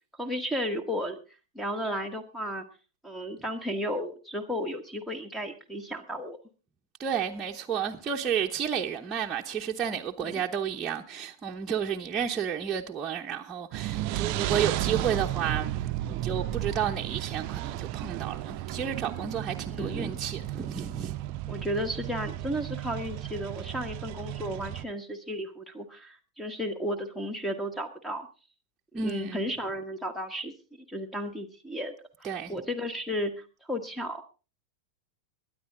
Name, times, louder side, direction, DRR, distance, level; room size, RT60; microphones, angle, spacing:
voice 1, 0.2-1.2 1.5-2.6 3.0-6.4 10.3-10.4 19.7-20.2 21.5-28.3 28.9-30.5 30.9-31.9 32.2-34.2, equal, 5° left, 1.4 m, -33 dB
voice 2, 7.0-21.1 28.9-29.4 32.2-32.5, right 8 dB, 20° right, 1.0 m, -31 dB
sound 1, 13.7-24.8, right 14 dB, 45° right, 0.6 m, -33 dB
22.5 x 9.7 x 3.8 m
figure-of-eight pair, 90°, 0 cm